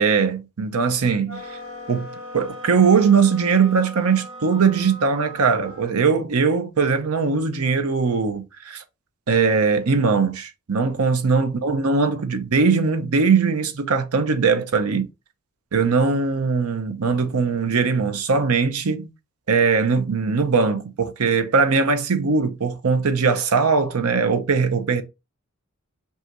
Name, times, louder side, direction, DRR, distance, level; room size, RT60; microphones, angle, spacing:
voice 1, 0.0-1.4 1.9-2.1 2.3-8.8 9.3-15.1 15.7-19.1 19.5-25.0, right 5 dB, 85° right, 0.7 m, -20 dB
sound 1, 1.3-5.9, equal, 70° right, 1.6 m, -39 dB
5.4 x 2.4 x 2.9 m
head